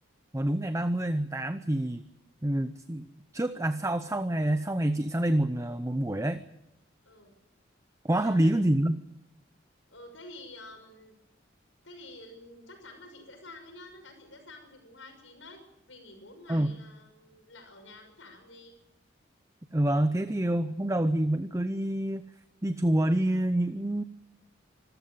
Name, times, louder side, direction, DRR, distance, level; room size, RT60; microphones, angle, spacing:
voice 1, 0.3-2.0 2.4-3.1 3.3-6.4 8.0-9.0 16.5-16.7 19.7-22.2 22.6-24.0, right 1 dB, 15° right, 11 dB, 0.7 m, -27 dB
voice 2, 8.2-8.5 9.9-11.2 11.8-18.7, left 2 dB, 85° left, 5 dB, 6.3 m, -49 dB
25.5 x 14.0 x 9.4 m, 0.87 s
head